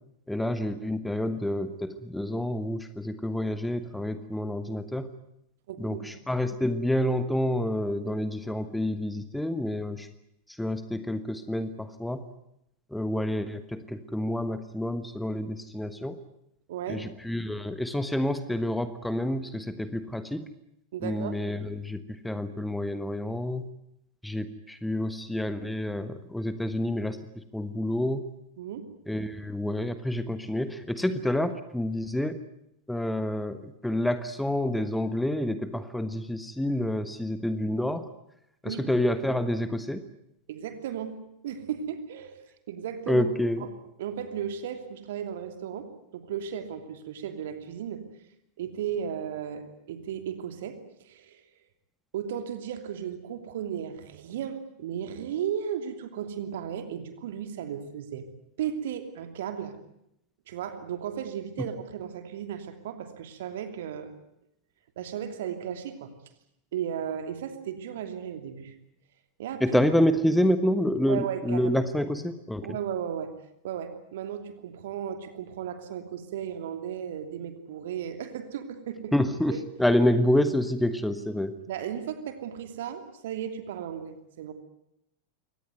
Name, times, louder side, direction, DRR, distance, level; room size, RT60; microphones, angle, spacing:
voice 1, 0.3-5.1 5.8-10.1 10.6-12.2 12.9-16.2 16.9-20.5 21.0-23.7 24.2-27.2 27.5-28.2 29.1-32.4 32.9-38.1 38.6-40.0 43.1-43.6 69.6-72.6 79.1-81.6, left 1 dB, 5° left, 11 dB, 1.3 m, -28 dB
voice 2, 5.7-6.1 16.7-17.1 20.9-21.4 28.6-28.9 38.6-38.8 40.5-41.2 41.4-42.4 42.7-43.3 43.6-43.7 44.0-48.0 48.6-50.8 51.0-51.4 52.1-58.2 58.6-59.8 60.5-64.2 65.0-66.1 66.7-68.7 69.4-69.8 71.1-71.7 72.6-73.3 73.6-79.1 79.5-79.6 81.7-84.5, right 9 dB, 55° right, 8 dB, 2.9 m, -35 dB
24.0 x 18.5 x 9.3 m, 0.79 s
figure-of-eight pair, 90°, 0 cm